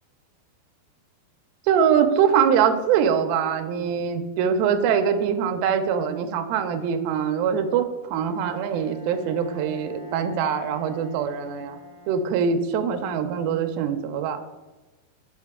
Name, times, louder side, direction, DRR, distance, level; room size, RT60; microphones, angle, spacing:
voice 1, 1.7-11.8 12.1-14.4, right 7 dB, 80° right, 7 dB, 2.3 m, -23 dB
Bowed string instrument, 8.2-12.7, left 1 dB, 65° right, 0.8 m, -43 dB
7.3 x 5.1 x 3.5 m, 1.1 s
omnidirectional pair, 4.5 m